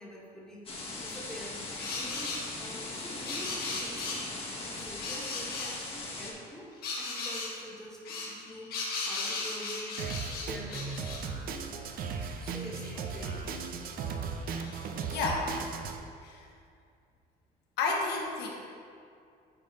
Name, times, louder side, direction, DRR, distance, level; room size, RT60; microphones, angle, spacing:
voice 1, 0.0-6.7 7.0-11.1 12.4-13.6, equal, 5° left, -5 dB, 1.6 m, -46 dB
sound 1, 0.7-6.3, left 2 dB, 35° left, 1.3 m, -40 dB
sound 2, 1.8-2.4 3.1-4.3 5.0-5.8 6.8-7.5 8.1-11.2 11.8-11.9 12.1-13.3 14.6-14.7 15.3-15.4, left 3 dB, 65° left, 1.4 m, -37 dB
Drum kit, 10.0-16.0, right 5 dB, 60° right, 0.6 m, -37 dB
voice 2, 14.6-15.5 16.2-16.5 17.8-18.5, left 4 dB, 85° left, -1 dB, 1.0 m, -32 dB
9.5 x 3.5 x 4.1 m, 2.4 s
cardioid pair, 110°, 17 cm